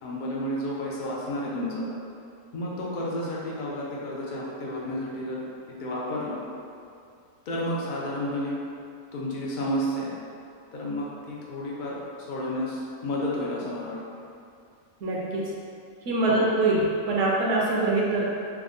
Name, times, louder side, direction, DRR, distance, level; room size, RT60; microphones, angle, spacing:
voice 1, 0.0-1.8 2.5-5.4 5.8-6.4 7.5-8.6 9.1-10.1 10.7-12.0 12.3-14.3 16.3-16.5, left 1 dB, 75° left, -5 dB, 0.4 m, -31 dB
voice 2, 15.0-15.5 16.1-18.3, right 2 dB, 65° right, -4 dB, 0.8 m, -24 dB
3.5 x 2.1 x 3.7 m, 2.5 s
omnidirectional pair, 1.5 m